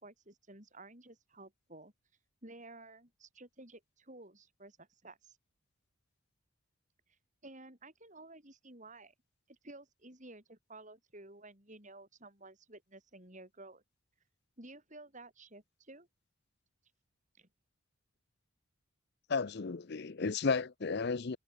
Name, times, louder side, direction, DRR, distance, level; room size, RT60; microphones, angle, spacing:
voice 1, 0.0-1.9 2.4-5.4 7.4-9.1 9.5-13.8 14.6-16.1 17.4-17.5, right 2 dB, 35° right, 5.3 m, -53 dB
voice 2, 19.3-21.4, left 4 dB, 50° left, 0.6 m, -33 dB
head